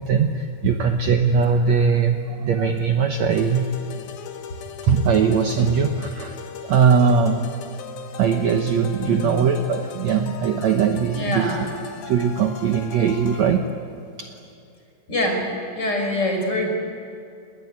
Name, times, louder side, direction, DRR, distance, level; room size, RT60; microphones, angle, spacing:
voice 1, 0.0-3.7 4.8-7.5 8.2-11.5 12.0-13.7 14.2-14.3, right 6 dB, 65° right, 5 dB, 2.0 m, -20 dB
sound 1, 3.3-13.6, left 7 dB, 85° left, 3.6 m, -38 dB
voice 2, 9.0-9.4 11.1-11.6 15.1-15.5 15.7-16.7, left 1 dB, 30° left, 2 dB, 5.8 m, -24 dB
28.5 x 21.0 x 9.6 m, 2.6 s
omnidirectional pair, 4.2 m